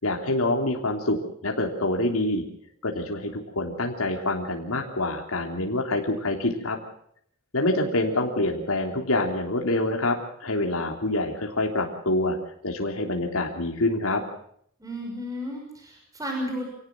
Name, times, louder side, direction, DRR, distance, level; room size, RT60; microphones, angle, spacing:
voice 1, 0.0-2.4 2.8-6.8 7.5-12.4 12.6-14.2, left 2 dB, 85° left, 1 dB, 3.3 m, -26 dB
voice 2, 14.8-16.6, equal, 15° right, 1 dB, 6.3 m, -33 dB
26.5 x 18.0 x 6.2 m, 0.66 s
head